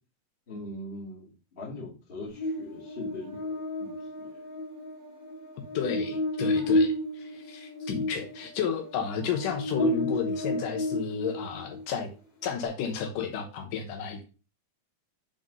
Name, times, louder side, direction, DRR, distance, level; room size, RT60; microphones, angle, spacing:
voice 1, 0.5-4.4, left 2 dB, 20° left, -6 dB, 1.7 m, -41 dB
Buzz, 2.4-11.8, left 1 dB, 40° left, 2.0 m, -31 dB
voice 2, 5.7-12.1 12.4-14.2, left 7 dB, 85° left, 3 dB, 2.6 m, -32 dB
6.0 x 3.8 x 5.2 m, 0.33 s
omnidirectional pair, 3.7 m